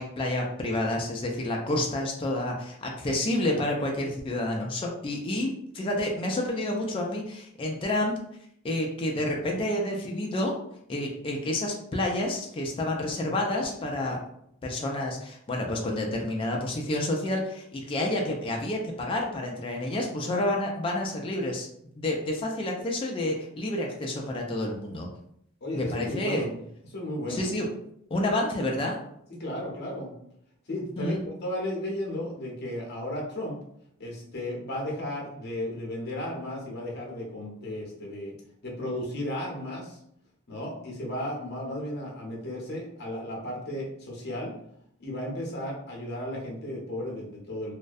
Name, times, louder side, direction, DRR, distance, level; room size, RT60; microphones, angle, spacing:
voice 1, 0.0-5.5 5.7-8.2 8.6-10.5 10.9-14.2 14.6-21.7 22.0-25.1 25.7-26.4 27.3-27.7 28.1-28.9 31.0-31.2, left 1 dB, 25° left, 0 dB, 0.3 m, -29 dB
voice 2, 25.6-26.6 26.8-27.5 29.3-30.1 30.7-33.6 34.0-38.3 38.6-40.0 40.5-44.5 45.0-47.7, left 1 dB, 50° left, -2 dB, 0.7 m, -34 dB
2.3 x 2.1 x 2.5 m, 0.72 s
head